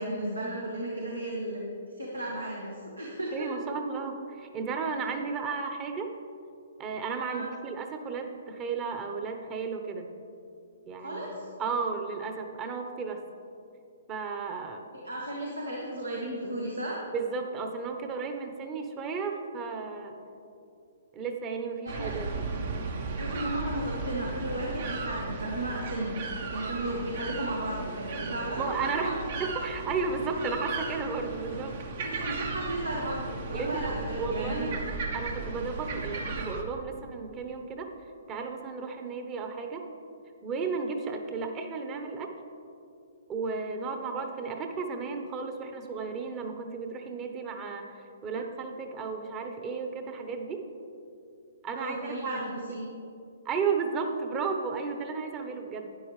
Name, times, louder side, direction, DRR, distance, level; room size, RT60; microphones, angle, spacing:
voice 1, 0.0-1.6 2.0-3.5 7.3-7.5 11.0-11.5 14.9-17.0 21.8-22.1 23.1-26.2 26.5-28.7 29.0-29.1 32.0-34.8 35.9-36.1 51.7-52.9, right 1 dB, 90° right, -3 dB, 1.6 m, -34 dB
voice 2, 3.3-6.2 6.8-10.1 10.8-11.3 11.6-13.2 14.1-14.8 17.1-20.2 21.1-22.4 28.6-31.7 33.5-34.8 35.1-37.9 38.3-39.9 40.4-42.3 43.3-50.7 51.6-52.4 53.4-55.9, right 4 dB, 25° right, 4 dB, 1.0 m, -34 dB
sound 1, 21.9-36.6, right 3 dB, 55° right, 1.1 m, -35 dB
12.0 x 9.5 x 3.3 m, 2.6 s
figure-of-eight pair, 125°, 0 cm